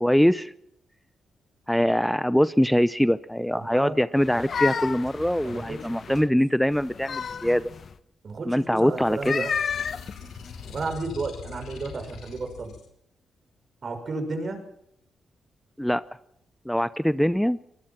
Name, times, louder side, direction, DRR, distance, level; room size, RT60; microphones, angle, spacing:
voice 1, 0.0-0.5 1.7-7.7 8.5-9.4 15.8-16.0 16.7-17.6, equal, 5° left, 15 dB, 0.8 m, -23 dB
voice 2, 3.5-4.0 5.4-6.3 8.2-9.5 10.7-12.7 13.8-14.7, right 3 dB, 50° right, 7 dB, 6.1 m, -33 dB
sound 1, 4.2-6.3 6.7-7.9 9.1-10.9, left 6 dB, 60° left, 1.2 m, -32 dB
sound 2, 9.5-12.9, left 6 dB, 85° left, 4.7 m, -42 dB
24.0 x 20.0 x 6.0 m, 0.75 s
supercardioid pair, 55°, 0 cm